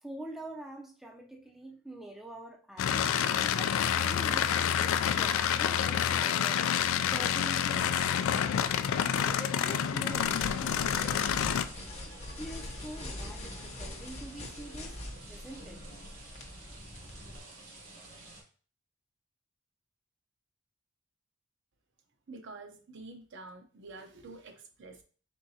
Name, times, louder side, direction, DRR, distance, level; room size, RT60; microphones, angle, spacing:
voice 1, 0.0-6.7 7.1-8.3 9.2-11.6 12.4-15.0 15.3-15.8, right 1 dB, ahead, 0 dB, 0.5 m, -45 dB
sound 1, 2.8-11.6, left 8 dB, 65° left, 0.3 m, -28 dB
sound 2, 10.1-17.4, left 1 dB, 30° left, 0.8 m, -43 dB
sound 3, 10.1-18.4, right 2 dB, 75° right, 2.1 m, -50 dB
voice 2, 22.3-25.0, right 3 dB, 60° right, 5 dB, 0.7 m, -48 dB
4.6 x 3.7 x 2.7 m, 0.40 s
head